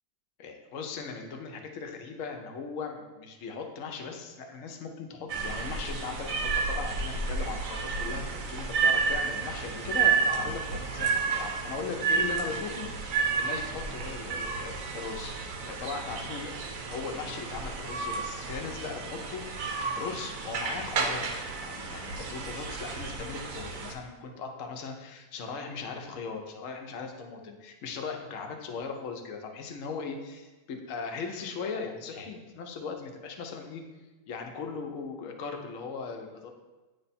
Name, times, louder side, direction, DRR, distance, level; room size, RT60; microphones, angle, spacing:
voice 1, 0.4-16.6 16.9-21.3 21.6-33.8 34.3-36.5, left 5 dB, 60° left, 3 dB, 0.9 m, -38 dB
sound 1, 5.3-23.9, right 5 dB, 60° right, 0.9 m, -31 dB
9.0 x 3.3 x 4.1 m, 1.2 s
omnidirectional pair, 2.0 m